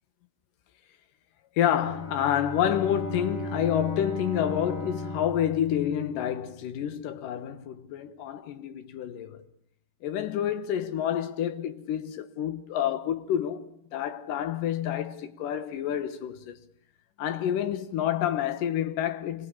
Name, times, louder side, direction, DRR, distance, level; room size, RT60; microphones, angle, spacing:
voice 1, 1.6-9.4 10.0-16.6 17.2-19.5, left 10 dB, 65° left, 2.3 m, -28 dB
Bowed string instrument, 1.7-6.7, right 1 dB, 10° left, 1.9 m, -38 dB
27.5 x 22.0 x 7.2 m
omnidirectional pair, 5.1 m